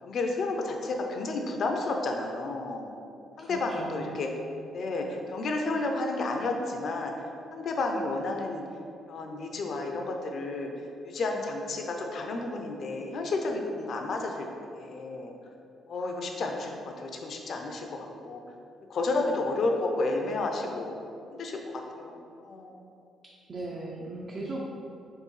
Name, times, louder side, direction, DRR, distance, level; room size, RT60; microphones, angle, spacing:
voice 1, 0.0-2.9 3.4-4.3 4.7-7.1 7.5-8.6 9.1-10.7 11.0-15.3 15.9-18.4 18.9-21.0 21.3-22.9, left 2 dB, 60° left, 2 dB, 0.4 m, -31 dB
voice 2, 3.4-4.2 23.5-24.6, right 2 dB, 40° right, -3 dB, 0.5 m, -37 dB
4.5 x 2.6 x 3.1 m, 2.6 s
cardioid pair, 90°, 0 cm